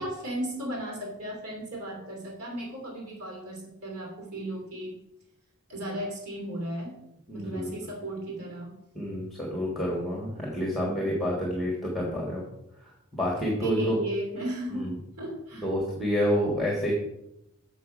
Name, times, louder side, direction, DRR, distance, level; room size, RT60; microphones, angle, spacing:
voice 1, 0.0-5.0 5.7-7.0 7.3-8.8 9.1-9.3 10.6-11.1 13.6-15.7, right 1 dB, 75° right, -1 dB, 2.7 m, -36 dB
voice 2, 7.3-7.7 8.9-12.4 13.1-13.9 14.7-14.9 15.6-16.9, equal, ahead, -2 dB, 1.6 m, -28 dB
7.4 x 6.7 x 5.1 m, 0.85 s
head